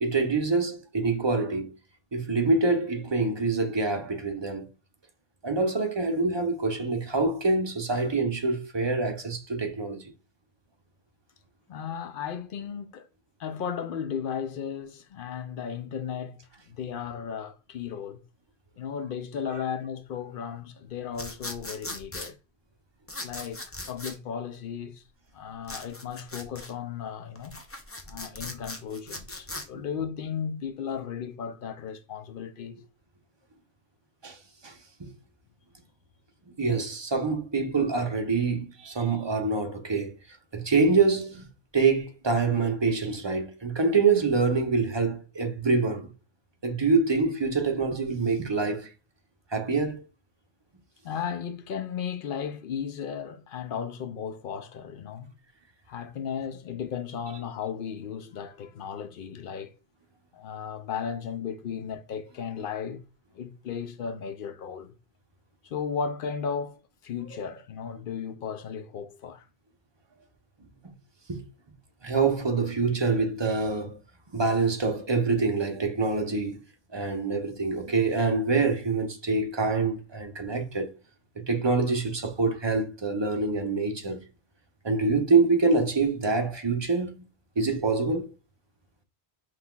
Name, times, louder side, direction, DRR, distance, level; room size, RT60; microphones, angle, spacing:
voice 1, 0.0-1.7 2.1-4.7 5.4-10.1 19.5-19.6 34.2-34.4 34.6-34.7 35.0-35.1 36.6-40.1 40.5-41.4 41.7-46.1 46.6-48.9 49.5-50.0 71.3-71.4 72.0-74.0 74.3-76.6 76.9-80.9 81.4-84.2 84.8-87.2 87.6-88.3, right 4 dB, 30° right, 0.7 m, -25 dB
voice 2, 11.7-13.1 13.4-18.2 18.8-22.3 23.2-25.0 25.3-27.6 28.1-32.8 51.0-55.3 55.9-59.7 60.3-63.0 63.3-64.9 65.6-69.4, left 7 dB, 60° left, 0.7 m, -35 dB
sound 1, 21.1-22.3 23.1-24.2 25.6-26.7 27.4-29.7, left 2 dB, 20° left, 0.4 m, -39 dB
5.5 x 3.2 x 2.3 m
omnidirectional pair, 1.1 m